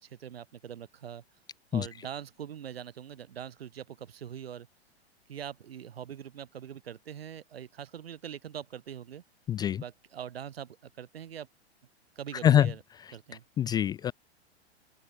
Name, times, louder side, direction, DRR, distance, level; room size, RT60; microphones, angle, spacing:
voice 1, 0.0-1.2 1.7-4.7 5.3-9.2 9.7-11.5 12.1-12.8 13.1-13.4, right 9 dB, 60° right, 3.2 m, -42 dB
voice 2, 9.5-9.8 12.4-12.7 13.6-14.1, left 10 dB, 10° left, 0.5 m, -24 dB
open air
figure-of-eight pair, 105°, 33 cm